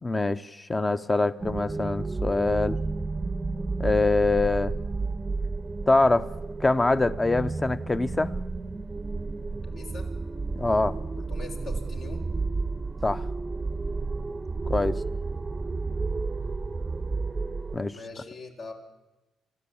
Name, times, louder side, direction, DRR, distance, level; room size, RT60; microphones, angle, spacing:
voice 1, 0.0-2.8 3.8-4.7 5.9-6.3 6.6-8.3 10.6-11.0 13.0-13.2 14.7-15.0 17.7-18.0, left 2 dB, 20° left, 0.9 m, -24 dB
sound 1, 1.4-17.8, right 3 dB, 25° right, 0.8 m, -31 dB
voice 2, 9.6-10.1 11.2-12.2 14.8-15.1 17.9-18.7, left 3 dB, 65° left, 4.4 m, -42 dB
29.0 x 13.0 x 8.7 m
cardioid pair, 90°, 0 cm